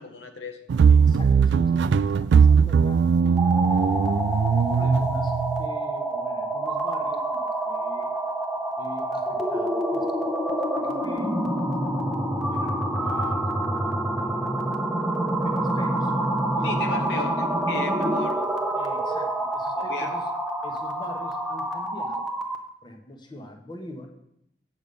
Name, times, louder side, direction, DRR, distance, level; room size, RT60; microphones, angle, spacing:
voice 1, 0.0-0.7 16.6-18.4 19.8-20.2, left 3 dB, 85° left, 5 dB, 1.0 m, -34 dB
sound 1, 0.7-5.7, right 6 dB, 80° right, 0.3 m, -19 dB
voice 2, 0.9-4.2 4.7-8.1 8.8-10.3 10.8-11.4 12.5-14.5 15.2-16.1 16.5-17.3 18.7-20.3 20.6-22.3 22.8-24.1, left 1 dB, 25° left, 4 dB, 1.0 m, -43 dB
sound 2, 3.3-22.7, right 1 dB, ahead, 0.9 m, -27 dB
7.8 x 5.2 x 6.8 m, 0.78 s
head